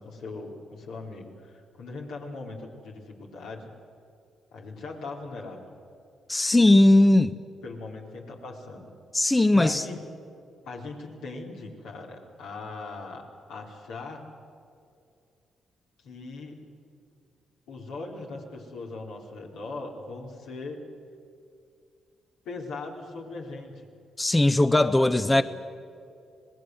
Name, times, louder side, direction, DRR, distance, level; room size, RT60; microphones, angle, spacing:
voice 1, 0.0-3.7 4.5-5.7 7.6-8.9 9.5-10.0 10.6-14.3 16.0-16.6 17.7-20.8 22.4-23.9 25.0-25.4, left 3 dB, 75° left, -1 dB, 4.2 m, -39 dB
voice 2, 6.3-7.4 9.1-9.8 24.2-25.4, left 1 dB, 20° left, 11 dB, 0.9 m, -19 dB
26.5 x 19.5 x 8.0 m, 2.5 s
hypercardioid pair, 50°, 0 cm